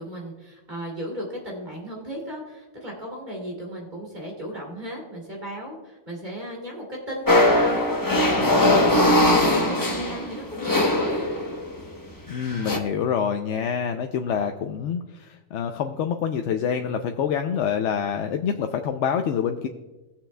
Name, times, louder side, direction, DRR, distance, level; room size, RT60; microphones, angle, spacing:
voice 1, 0.0-11.2, equal, 40° right, -3 dB, 2.8 m, -35 dB
sound 1, 7.3-11.7 12.4-12.8, left 1 dB, 20° left, 0.9 m, -20 dB
voice 2, 12.3-19.7, left 7 dB, 80° left, 5 dB, 0.9 m, -26 dB
19.5 x 7.2 x 2.2 m, 1.1 s
omnidirectional pair, 1.2 m